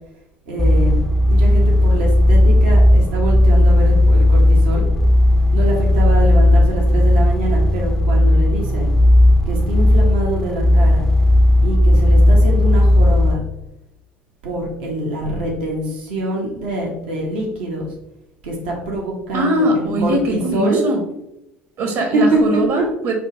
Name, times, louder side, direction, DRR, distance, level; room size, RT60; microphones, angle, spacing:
voice 1, 0.5-4.8 5.5-8.9 9.4-11.1 11.6-13.4 14.4-17.9 18.4-20.8 22.1-22.6, right 1 dB, 70° right, -1 dB, 1.0 m, -24 dB
sound 1, 0.6-13.3, left 1 dB, 5° left, 0.5 m, -14 dB
voice 2, 19.3-21.0 21.8-23.1, right 1 dB, 50° right, 3 dB, 1.2 m, -20 dB
4.2 x 2.4 x 4.4 m, 0.85 s
figure-of-eight pair, 65°, 6 cm